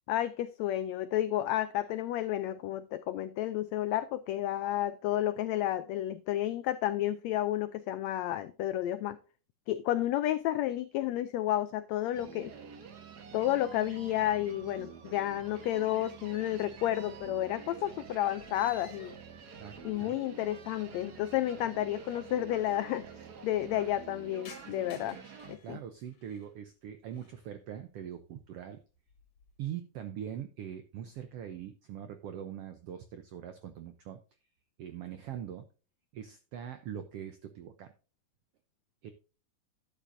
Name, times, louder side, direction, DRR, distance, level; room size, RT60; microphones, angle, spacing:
voice 1, 0.1-9.2 9.7-12.5 13.3-19.1 19.8-23.1 23.4-25.2 25.5-25.8, left 13 dB, 90° left, 1.5 m, -31 dB
sound 1, 12.1-25.6, right 6 dB, 70° right, 0.9 m, -48 dB
sound 2, 15.3-16.2 16.4-20.5 20.8-20.9 21.8-21.9 22.1-22.2 22.4-22.9 23.3-26.5 27.0-27.5 27.9-28.3 28.7-29.6, left 4 dB, 50° left, 2.5 m, -58 dB
voice 2, 19.6-20.2 25.6-28.8 29.6-34.2 34.8-35.6 36.1-37.9 39.0-39.1, right 9 dB, 85° right, 1.3 m, -42 dB
12.0 x 8.9 x 2.6 m
omnidirectional pair, 3.7 m